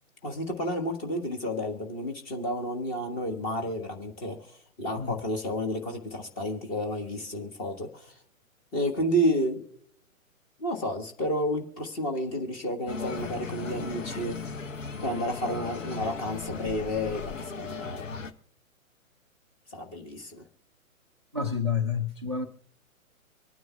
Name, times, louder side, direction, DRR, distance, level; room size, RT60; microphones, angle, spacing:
voice 1, 0.2-4.5 4.8-8.1 8.7-9.6 10.6-14.4 15.0-18.0 19.7-20.4, equal, 20° left, 1.6 m, -31 dB
sound 1, 12.9-18.3, left 5 dB, 65° left, 1.2 m, -37 dB
voice 2, 21.3-22.5, left 6 dB, 20° right, 0.3 m, -29 dB
25.5 x 9.4 x 2.3 m
figure-of-eight pair, 125°, 41 cm